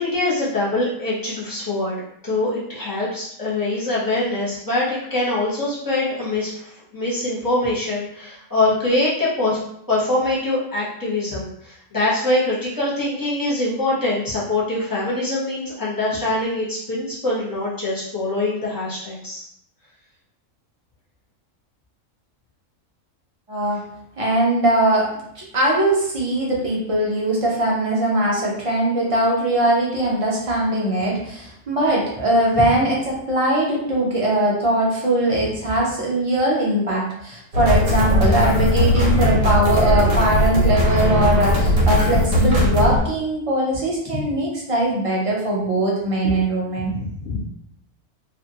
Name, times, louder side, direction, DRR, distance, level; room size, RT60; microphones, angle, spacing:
voice 1, 0.0-2.0 2.2-9.6 9.9-19.4 46.9-47.4, left 2 dB, 20° left, -7 dB, 0.8 m, -23 dB
voice 2, 23.5-23.8 24.2-25.1 25.3-46.9, right 1 dB, 35° right, -4 dB, 0.5 m, -21 dB
sound 1, 37.5-43.0, left 1 dB, 85° right, 1.4 m, -18 dB
2.7 x 2.5 x 2.8 m, 0.71 s
omnidirectional pair, 1.4 m